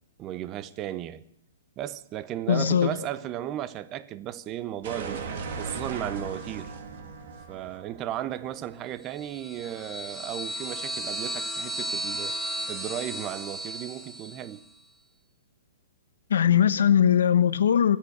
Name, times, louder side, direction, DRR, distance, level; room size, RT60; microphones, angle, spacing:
voice 1, 0.2-1.2 1.8-5.2 5.5-6.7 7.5-12.3 12.7-14.6, right 12 dB, 25° right, 0.7 m, -35 dB
voice 2, 2.5-2.9 16.3-18.0, left 9 dB, 80° left, 1.1 m, -20 dB
sound 1, 4.8-9.6, right 4 dB, 55° right, 2.6 m, -38 dB
sound 2, 9.1-14.6, right 1 dB, ahead, 1.6 m, -34 dB
25.0 x 8.5 x 6.7 m
hypercardioid pair, 160°, 0 cm